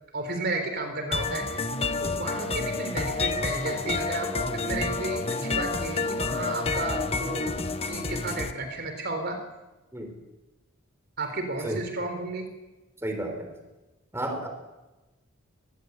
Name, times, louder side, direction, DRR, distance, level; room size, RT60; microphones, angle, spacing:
voice 1, 0.1-7.5 7.9-9.4 11.2-12.5, right 2 dB, 50° right, 7 dB, 3.8 m, -33 dB
sound 1, 1.1-8.5, left 3 dB, 25° left, 1.2 m, -29 dB
voice 2, 13.0-13.5 14.1-14.5, right 1 dB, 10° right, 4 dB, 3.9 m, -32 dB
23.5 x 20.5 x 8.3 m, 1.1 s
head